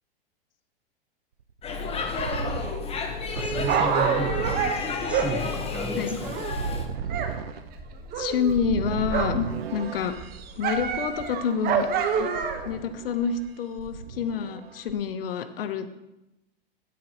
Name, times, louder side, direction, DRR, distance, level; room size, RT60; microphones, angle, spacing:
sound 1, 1.4-10.4 12.3-13.5 13.8-14.9, right 8 dB, 85° right, 0.6 m, -35 dB
Speech / Shout / Subway metro underground, 1.6-6.9, left 4 dB, 20° left, 1.0 m, -31 dB
Dog, 3.2-7.3 7.6-9.5 9.8-12.8 13.4-13.5, right 7 dB, 30° right, 1.1 m, -28 dB
voice 1, 3.4-4.7 5.1-6.4, right 2 dB, 5° right, 3 dB, 0.9 m, -33 dB
voice 2, 8.1-10.2 10.6-11.9 12.2-12.3 12.7-15.9, left 7 dB, 70° left, 10 dB, 0.8 m, -28 dB
11.5 x 7.5 x 2.9 m, 0.94 s
hypercardioid pair, 110°, 29 cm